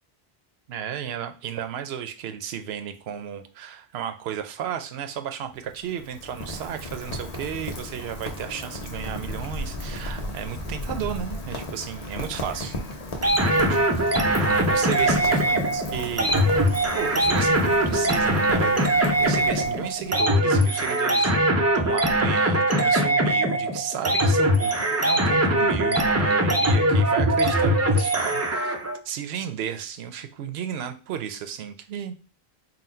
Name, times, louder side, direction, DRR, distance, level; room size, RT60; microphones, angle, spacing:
voice 1, 0.7-12.7 13.7-21.3 21.7-28.8 29.0-32.2, right 9 dB, 75° right, 8 dB, 0.8 m, -34 dB
Rain, 5.4-20.3, left 1 dB, 40° left, 0.8 m, -35 dB
sound 1, 13.2-29.0, right 1 dB, 25° right, 0.4 m, -21 dB
3.9 x 2.2 x 4.2 m, 0.35 s
omnidirectional pair, 1.1 m